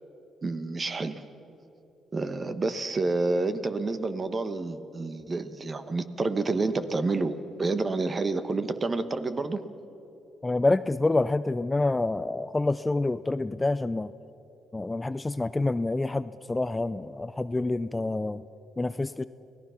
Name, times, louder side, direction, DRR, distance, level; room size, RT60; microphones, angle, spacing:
voice 1, 0.4-1.2 2.1-9.6, right 3 dB, 30° right, 10 dB, 1.3 m, -29 dB
voice 2, 10.4-14.1 14.7-18.4 18.8-19.2, left 2 dB, 15° left, 14 dB, 0.4 m, -27 dB
29.5 x 18.0 x 5.8 m, 2.9 s
cardioid pair, 90°, 0 cm